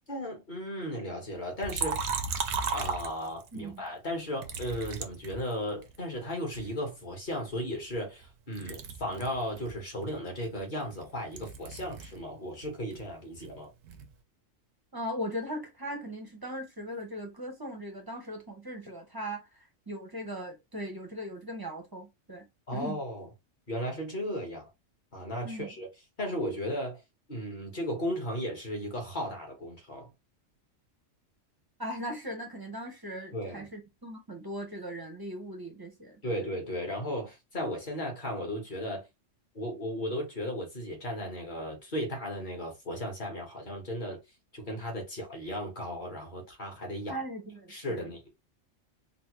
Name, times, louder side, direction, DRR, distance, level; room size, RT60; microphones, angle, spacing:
voice 1, 0.1-2.1 2.7-13.7 22.7-23.3 23.7-24.7 25.1-25.9 26.2-27.0 27.3-30.1 33.3-33.6 36.2-39.0 39.5-44.2 44.5-47.2 47.7-48.3, equal, 40° left, 1.2 m, -35 dB
Liquid, 1.6-3.6 4.4-6.0 6.5-8.3 8.5-12.2 12.5-14.1, right 5 dB, 80° right, 1.0 m, -36 dB
voice 2, 3.5-3.8 14.9-22.4 22.7-23.0 25.4-25.7 31.8-36.3 47.1-48.1, equal, 25° right, 0.6 m, -39 dB
3.8 x 2.1 x 3.0 m
omnidirectional pair, 1.3 m